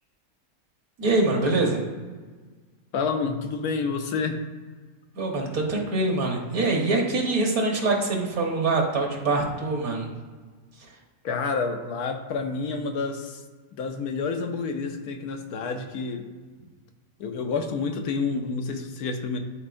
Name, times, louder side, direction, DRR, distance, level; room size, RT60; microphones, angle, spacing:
voice 1, 1.0-1.8 5.1-10.1 10.8-10.9, right 2 dB, 70° right, 0 dB, 1.7 m, -24 dB
voice 2, 2.9-4.4 11.2-13.4 13.7-16.3 17.2-19.4, left 4 dB, 85° left, 5 dB, 1.2 m, -29 dB
11.5 x 4.3 x 2.6 m, 1.4 s
omnidirectional pair, 1.6 m